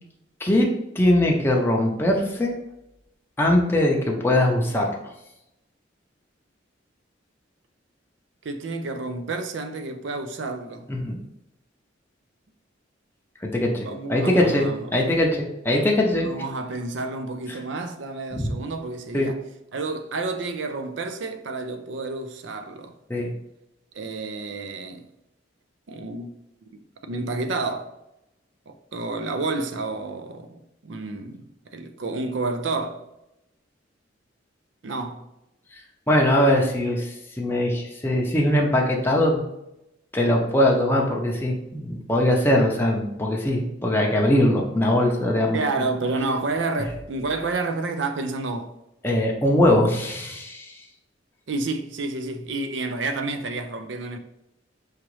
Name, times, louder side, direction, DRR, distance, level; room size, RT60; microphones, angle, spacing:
voice 1, 0.4-0.7 1.0-2.5 3.4-4.9 10.9-11.1 13.4-16.3 18.3-18.5 19.1-19.3 23.1-23.3 36.1-39.5 40.1-45.6 49.0-50.7, left 1 dB, 10° left, 0.6 m, -21 dB
voice 2, 8.4-10.9 13.8-14.9 16.2-19.4 19.7-22.9 23.9-25.0 25.9-26.3 27.0-27.9 28.7-33.1 34.8-35.3 45.5-48.8 51.5-54.2, right 3 dB, 70° right, 0.5 m, -30 dB
4.8 x 3.0 x 3.1 m
head